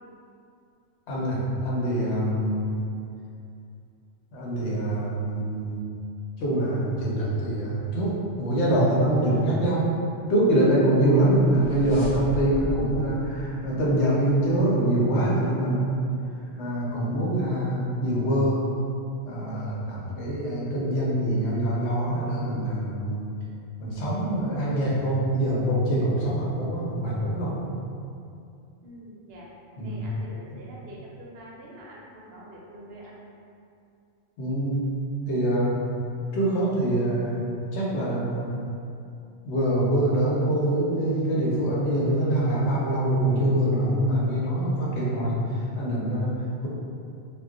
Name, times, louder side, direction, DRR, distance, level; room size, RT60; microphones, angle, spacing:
voice 1, 1.1-2.7 4.3-5.8 6.4-9.9 10.3-15.9 16.6-18.6 19.2-23.3 23.8-27.6 29.8-30.1 30.5-30.6 34.4-34.9 35.3-35.8 36.3-37.4 37.7-38.5 39.4-46.7, right 1 dB, 65° left, -6 dB, 0.9 m, -24 dB
sound 1, 11.3-14.7, equal, 15° left, 0.6 m, -36 dB
voice 2, 28.8-29.5 29.8-33.2, right 1 dB, 65° right, -4 dB, 0.7 m, -45 dB
2.2 x 2.1 x 3.6 m, 2.5 s
omnidirectional pair, 1.3 m